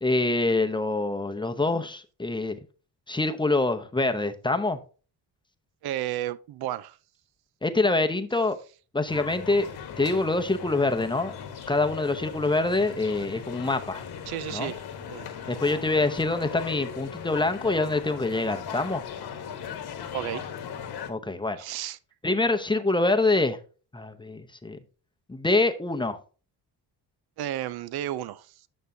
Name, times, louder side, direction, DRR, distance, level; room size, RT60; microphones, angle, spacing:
voice 1, 0.0-2.6 3.1-4.8 7.6-8.6 8.9-9.7 10.0-11.3 11.7-14.0 14.5-14.7 15.5-19.0 21.1-21.6 22.2-23.6 23.9-24.8 25.3-26.2, left 2 dB, 10° left, 0.7 m, -25 dB
voice 2, 5.8-7.0 14.3-15.5 20.1-20.5 21.6-22.0 27.4-28.5, right 12 dB, 65° right, 0.6 m, -33 dB
sound 1, 9.1-21.1, left 7 dB, 70° left, 1.3 m, -38 dB
9.1 x 6.3 x 2.7 m
cardioid pair, 95°, 41 cm